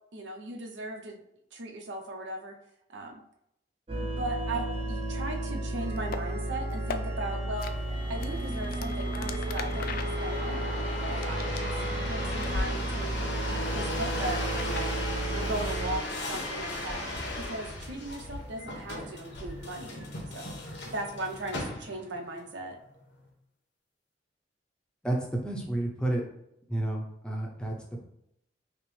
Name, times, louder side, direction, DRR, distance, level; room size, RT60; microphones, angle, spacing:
voice 1, 0.1-1.2 1.5-2.5 2.9-3.2 4.0-7.7 8.1-11.7 12.1-14.9 15.3-17.0 17.5-20.6 20.9-22.8, right 1 dB, 80° right, 2 dB, 0.7 m, -38 dB
sound 1, 3.9-16.0, right 1 dB, 30° right, 0.7 m, -33 dB
sound 2, 6.0-6.2 6.7-7.0 7.6-7.7 8.2-12.1 12.4-12.7 13.0-14.9, left 4 dB, 55° left, 0.3 m, -39 dB
sound 3, 7.6-22.2 22.8-23.3, left 1 dB, 90° left, 1.1 m, -37 dB
voice 2, 25.0-26.2 26.7-28.0, right 1 dB, 5° left, -1 dB, 0.6 m, -31 dB
5.9 x 2.0 x 3.1 m, 0.78 s
head